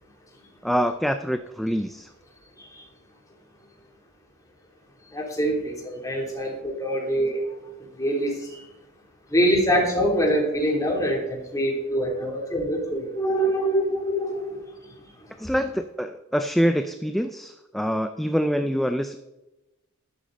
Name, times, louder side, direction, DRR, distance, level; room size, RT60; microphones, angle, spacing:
voice 1, 0.6-2.1 15.4-19.2, equal, ahead, 7 dB, 0.5 m, -25 dB
voice 2, 5.1-5.6 5.8-7.4 8.0-8.6 9.3-14.7, equal, 15° left, -2 dB, 3.3 m, -24 dB
12.0 x 12.0 x 4.1 m, 0.99 s
head